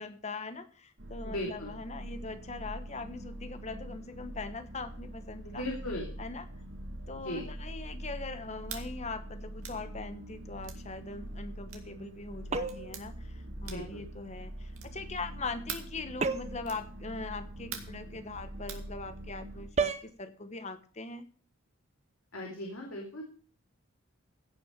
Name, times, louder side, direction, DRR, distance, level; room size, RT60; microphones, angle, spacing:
voice 1, 0.0-5.6 6.2-6.5 7.1-21.3, left 3 dB, 30° left, 10 dB, 1.1 m, -41 dB
sound 1, 1.0-19.7, right 1 dB, 55° right, 2.0 m, -44 dB
voice 2, 1.3-1.7 5.4-6.1 7.2-7.4 13.7-14.0 22.3-23.2, left 1 dB, 70° left, -1 dB, 2.9 m, -37 dB
sound 2, 8.6-8.9 9.6-9.8 10.6-10.8 11.7-11.9 12.7-13.1 13.6-14.0 14.7-15.0 15.7-16.0 16.6-16.9 17.7-18.0 18.7-18.9, right 8 dB, 75° right, 2.2 m, -43 dB
sound 3, 12.5-13.0 16.2-16.7 19.8-20.1, right 4 dB, 30° right, 0.7 m, -31 dB
16.0 x 6.2 x 6.7 m, 0.42 s
head